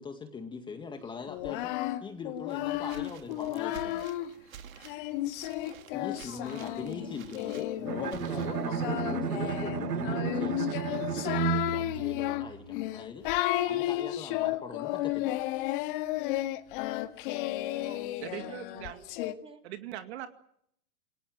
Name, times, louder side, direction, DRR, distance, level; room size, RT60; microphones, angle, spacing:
voice 1, 0.0-1.7 2.0-4.0 5.9-10.8 11.1-13.3 13.6-15.4, left 5 dB, 10° left, 6 dB, 1.9 m, -41 dB
Singing, 1.3-4.3 4.8-19.3, left 15 dB, 35° left, 1.8 m, -33 dB
sound 1, 2.5-8.9, right 9 dB, 60° right, 2.8 m, -51 dB
voice 2, 6.2-7.1 17.8-19.6, right 5 dB, 10° right, 5 dB, 3.2 m, -52 dB
Bowed string instrument, 7.9-12.9, right 8 dB, 90° right, 1.4 m, -33 dB
voice 3, 18.2-19.0 19.6-20.3, right 12 dB, 45° right, 9 dB, 2.3 m, -40 dB
28.0 x 21.0 x 7.8 m, 0.71 s
hypercardioid pair, 145°, 45 cm